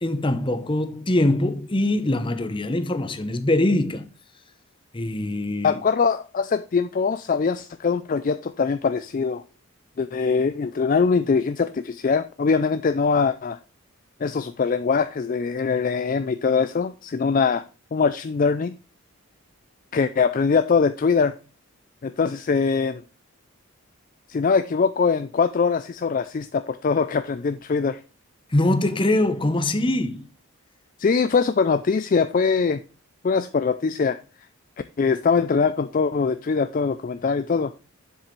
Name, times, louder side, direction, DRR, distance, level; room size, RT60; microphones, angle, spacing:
voice 1, 0.0-4.1 4.9-5.7 28.5-30.3, left 1 dB, 20° left, 0.7 m, -23 dB
voice 2, 5.6-9.4 10.0-13.6 14.2-17.7 17.9-18.7 19.9-21.3 22.0-23.0 24.3-28.0 31.0-32.8 33.2-34.2 35.0-37.7, left 5 dB, 40° left, 0.3 m, -22 dB
7.5 x 7.4 x 3.2 m
head